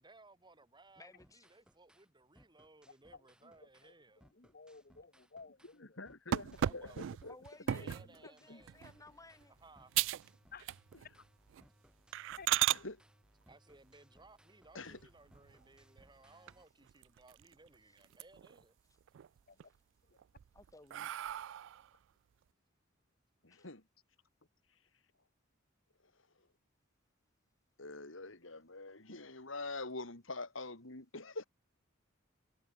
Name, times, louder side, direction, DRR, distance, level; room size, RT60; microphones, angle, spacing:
voice 1, 0.0-4.2 6.6-7.1 7.8-8.8 9.6-9.9 13.5-18.7, right 2 dB, 20° right, 5.1 m, -61 dB
voice 2, 1.0-1.5 7.2-9.5 17.8-18.0 18.9-19.0 19.6-19.8 20.5-21.1 23.5-23.7, left 2 dB, 15° left, 3.7 m, -59 dB
sound 1, 1.2-2.1 2.4-3.9 4.2-5.8 6.1-7.6 7.9-16.7, equal, 5° right, 7.1 m, -67 dB
voice 3, 3.1-3.9 4.2-6.0 6.9-7.3 7.7-7.8 8.5-8.6 10.5-10.7 12.4-12.5 19.5-19.7 20.1-20.2, left 4 dB, 50° left, 1.9 m, -55 dB
voice 4, 5.8-7.3 7.7-7.9 12.7-13.0 14.7-15.0 23.4-23.8 27.8-31.4, left 3 dB, 70° left, 3.3 m, -45 dB
sound 2, 6.3-8.1 8.7-9.0 9.4-9.5 9.9-10.3 10.6-11.1 11.5-11.6 12.1-12.8 14.8-15.5 16.0-16.1 16.5-16.6 16.9-17.7 18.0-18.6 19.0-19.6 20.2-21.9, right 12 dB, 65° right, 0.3 m, -36 dB
head